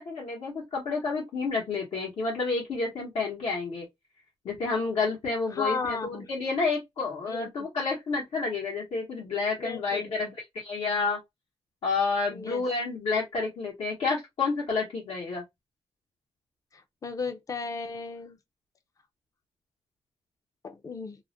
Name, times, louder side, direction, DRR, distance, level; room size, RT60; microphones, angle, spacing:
voice 1, 0.0-3.9 4.4-10.3 10.5-11.2 11.8-15.4, left 4 dB, 75° left, 0.9 m, -29 dB
voice 2, 5.5-6.3 7.3-7.5 9.6-10.3 12.3-12.6 16.7-18.4 20.6-21.2, left 4 dB, 30° left, 0.4 m, -35 dB
2.4 x 2.1 x 2.5 m
wide cardioid pair, 120°, 11 cm